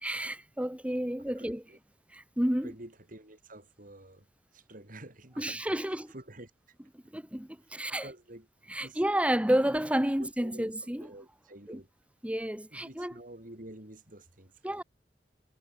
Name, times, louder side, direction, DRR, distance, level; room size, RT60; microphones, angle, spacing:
voice 1, 0.0-1.6 2.1-2.7 5.4-6.1 7.1-8.1 8.7-11.1 11.7-11.8 12.2-13.2 14.6-14.8, right 1 dB, 5° right, 1.4 m, -30 dB
voice 2, 1.4-1.8 2.6-4.3 4.5-6.5 8.0-8.5 8.8-9.0 10.2-10.7 11.0-11.9 12.7-14.8, right 1 dB, 50° right, 4.7 m, -49 dB
head